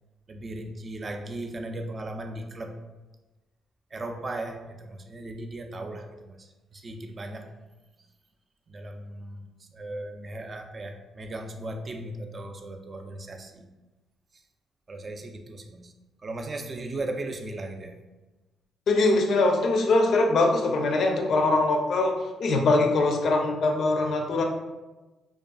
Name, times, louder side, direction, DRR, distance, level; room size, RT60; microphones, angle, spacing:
voice 1, 0.3-2.8 3.9-7.5 8.7-9.4 9.7-13.6 14.9-15.9 16.2-18.0, right 2 dB, 40° right, 5 dB, 0.3 m, -37 dB
voice 2, 18.9-24.4, left 2 dB, 65° left, 2 dB, 0.4 m, -22 dB
2.4 x 2.4 x 2.2 m, 1.1 s
hypercardioid pair, 55°, 0 cm